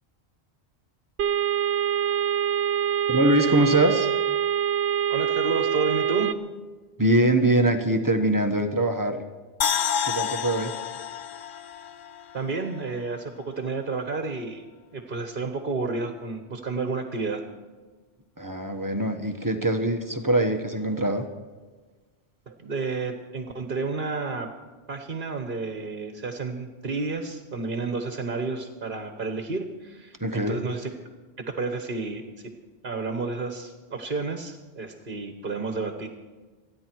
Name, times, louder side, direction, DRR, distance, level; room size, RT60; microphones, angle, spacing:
sound 1, 1.2-6.3, right 9 dB, 90° right, 0.9 m, -25 dB
voice 1, 3.1-4.1 7.0-9.2 10.0-10.7 18.4-21.3 30.2-30.6, right 1 dB, 20° right, 5 dB, 1.2 m, -23 dB
voice 2, 5.1-6.3 12.3-14.6 14.9-17.4 22.5-24.5 24.9-30.9 31.6-32.2 32.8-36.1, right 3 dB, 55° right, 5 dB, 1.4 m, -31 dB
sound 2, 9.6-12.8 13.1-13.2, left 8 dB, 60° left, 0.8 m, -29 dB
27.5 x 9.9 x 4.6 m, 1.4 s
omnidirectional pair, 1.1 m